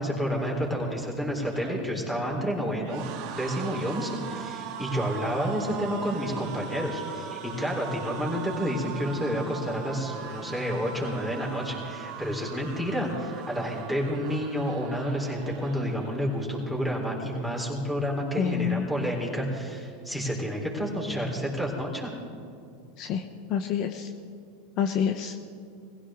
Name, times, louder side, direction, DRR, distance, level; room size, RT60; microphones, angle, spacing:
voice 1, 0.0-3.0 3.3-22.1, equal, 5° left, -2 dB, 4.2 m, -30 dB
sound 1, 1.4-16.6 16.9-17.2 17.4-18.2, right 7 dB, 55° right, 1.6 m, -40 dB
voice 2, 18.4-18.9 23.0-23.2 23.5-24.1 24.8-25.3, left 8 dB, 50° left, 6 dB, 0.9 m, -27 dB
22.5 x 16.0 x 3.8 m, 2.4 s
supercardioid pair, 115°, 0 cm